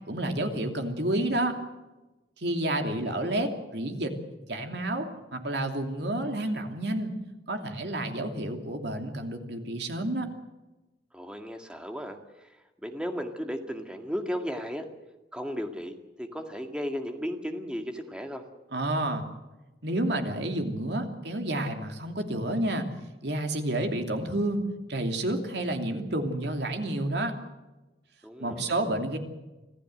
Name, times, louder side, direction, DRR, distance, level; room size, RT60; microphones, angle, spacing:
voice 1, 0.1-1.6 2.4-4.1 4.5-7.1 7.5-10.3 18.7-19.3 19.8-22.9 23.2-24.6 24.9-27.3 28.4-29.2, right 1 dB, 70° right, 5 dB, 2.8 m, -30 dB
voice 2, 11.1-12.5 12.8-14.9 15.3-18.4 28.2-28.7, equal, 5° right, 5 dB, 2.0 m, -35 dB
25.5 x 15.0 x 7.9 m, 1.1 s
head